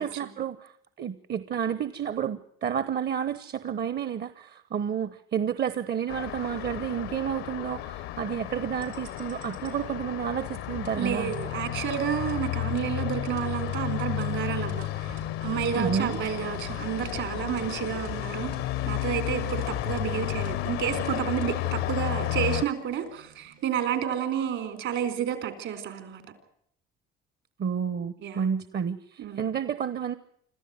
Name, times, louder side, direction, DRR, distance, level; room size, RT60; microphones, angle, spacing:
voice 1, 0.0-11.3 15.7-16.2 27.6-30.2, right 8 dB, 50° right, 14 dB, 1.0 m, -30 dB
Traffic noise roadway noise, 6.1-22.6, left 15 dB, 80° left, 0.9 m, -32 dB
sound 1, 8.8-24.2, right 7 dB, 85° right, 5.0 m, -48 dB
voice 2, 11.0-18.5 18.9-26.2 28.2-28.5 29.2-29.5, right 9 dB, 70° right, 10 dB, 4.2 m, -30 dB
26.0 x 14.0 x 9.6 m, 0.70 s
supercardioid pair, 80°, 21 cm